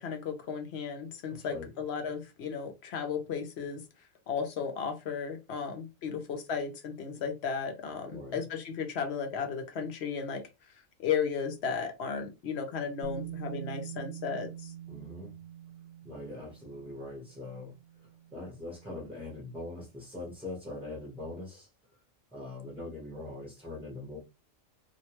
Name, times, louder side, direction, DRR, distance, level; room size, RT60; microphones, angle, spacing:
voice 1, 0.0-3.8 4.3-10.4 11.0-14.7, left 6 dB, 60° left, 0.8 m, -34 dB
voice 2, 1.3-1.7 8.0-8.4 14.9-15.3 16.0-17.7 18.3-21.7 22.3-24.2, left 2 dB, ahead, 0.7 m, -42 dB
Bass guitar, 13.0-19.1, right 10 dB, 60° right, 0.8 m, -44 dB
2.8 x 2.1 x 2.9 m
omnidirectional pair, 1.3 m